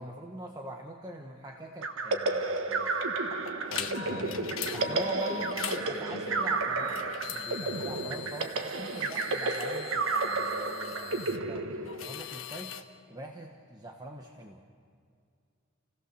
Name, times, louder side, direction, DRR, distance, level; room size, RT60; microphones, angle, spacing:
voice 1, 0.0-2.9 4.7-12.8 13.1-14.6, right 2 dB, 20° right, 1 dB, 1.2 m, -43 dB
sound 1, 1.8-12.4, right 3 dB, 70° right, 1.5 m, -32 dB
sound 2, 3.5-5.8 6.3-11.4 11.9-12.8, left 8 dB, 70° left, 1.2 m, -41 dB
voice 2, 3.7-5.0 5.7-6.5, equal, 15° left, -4 dB, 5.8 m, -41 dB
29.0 x 17.0 x 6.8 m, 2.3 s
head